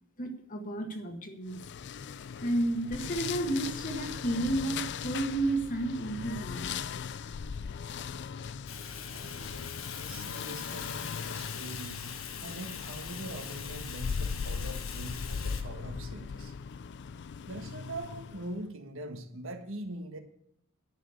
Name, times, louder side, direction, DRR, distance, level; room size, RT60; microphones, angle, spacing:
voice 1, 0.2-1.6 2.4-6.8, right 1 dB, 40° left, 1.7 m, -32 dB
sound 1, 1.5-18.6, left 6 dB, 55° left, 0.4 m, -39 dB
Fire, 8.7-15.6, left 8 dB, 75° left, 1.3 m, -42 dB
voice 2, 9.1-12.1 12.4-16.5 17.5-20.2, right 1 dB, 70° right, 1.6 m, -42 dB
10.5 x 6.4 x 8.4 m
head